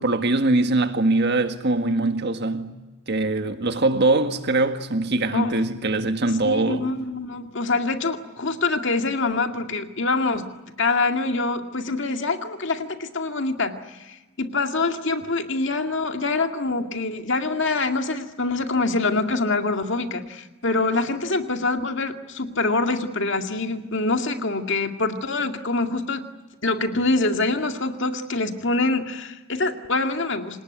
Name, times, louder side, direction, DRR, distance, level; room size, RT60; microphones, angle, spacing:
voice 1, 0.0-2.7 3.1-6.9, right 2 dB, 50° right, 1.8 m, -22 dB
voice 2, 6.4-10.5 10.8-26.2 26.6-30.6, left 3 dB, 60° left, 2.2 m, -25 dB
28.0 x 19.0 x 9.5 m
head